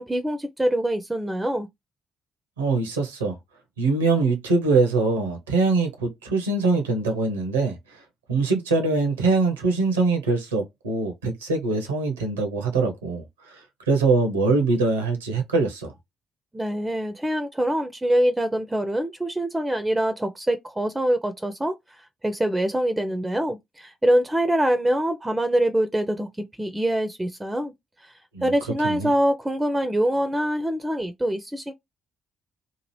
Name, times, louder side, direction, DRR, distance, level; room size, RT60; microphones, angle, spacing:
voice 1, 0.0-1.7 16.5-27.7 28.0-28.1 28.4-31.7, right 1 dB, 15° right, 0.5 m, -24 dB
voice 2, 2.6-3.4 3.8-8.0 8.3-15.9 28.3-28.4 28.8-29.1, right 3 dB, 90° right, 0.6 m, -23 dB
2.8 x 2.4 x 3.0 m
hypercardioid pair, 45°, 0 cm